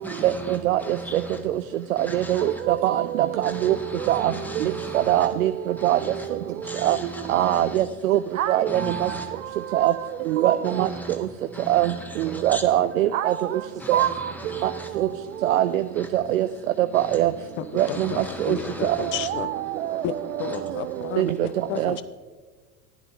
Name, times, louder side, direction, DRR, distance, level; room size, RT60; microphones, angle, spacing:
voice 1, 0.0-1.4 2.0-2.6 3.4-5.3 5.8-6.3 6.6-7.8 8.7-9.3 10.6-11.2 11.5-12.6 13.8-14.9 16.0-16.1 16.9-17.2 17.8-19.3 20.4-20.6, equal, 5° left, 3 dB, 1.3 m, -37 dB
voice 2, 2.1-3.0 3.4-3.8 4.1-4.3 5.1-5.5 5.8-6.0 6.8-7.0 7.3-9.1 9.7-9.9 10.3-10.9 11.7-11.9 12.2-13.3 13.9-14.1 14.6-14.7 15.0-15.1 15.4-15.8 16.1-16.5 16.9-17.3 17.8-17.9 18.5-18.6 21.2-21.3 21.8-21.9, right 13 dB, 65° right, 11 dB, 0.5 m, -21 dB
voice 3, 17.6-19.5 20.0-22.0, left 10 dB, 25° left, 15 dB, 0.5 m, -32 dB
15.0 x 11.5 x 2.7 m, 1.4 s
figure-of-eight pair, 80°, 44 cm